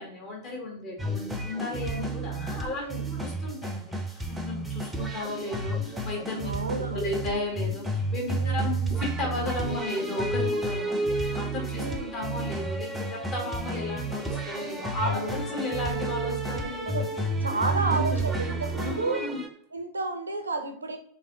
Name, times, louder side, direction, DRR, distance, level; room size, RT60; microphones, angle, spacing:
voice 1, 0.0-2.8 3.1-6.5 6.9-11.8 12.1-16.9 17.5-19.4, left 2 dB, 40° left, -1 dB, 1.5 m, -34 dB
sound 1, 1.0-19.5, right 2 dB, 10° right, 0.6 m, -31 dB
voice 2, 6.4-7.2 8.4-8.8 11.8-12.1 15.0-15.4 16.6-17.1 17.4-19.3 19.7-21.0, right 3 dB, 75° right, 7 dB, 0.5 m, -31 dB
3.5 x 3.3 x 3.8 m, 0.64 s
figure-of-eight pair, 90°, 0 cm